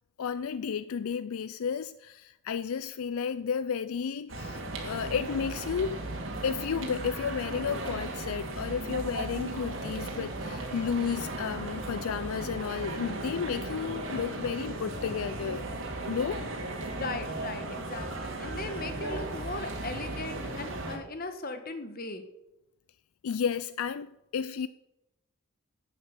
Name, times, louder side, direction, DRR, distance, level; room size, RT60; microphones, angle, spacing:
voice 1, 0.2-6.0 6.4-15.6 16.1-16.4 23.2-24.7, left 7 dB, 75° left, 0.4 m, -32 dB
sound 1, 4.3-21.0, right 2 dB, 60° right, 2.4 m, -36 dB
voice 2, 16.9-22.2, left 3 dB, 40° left, 1.3 m, -38 dB
10.5 x 8.8 x 7.4 m
head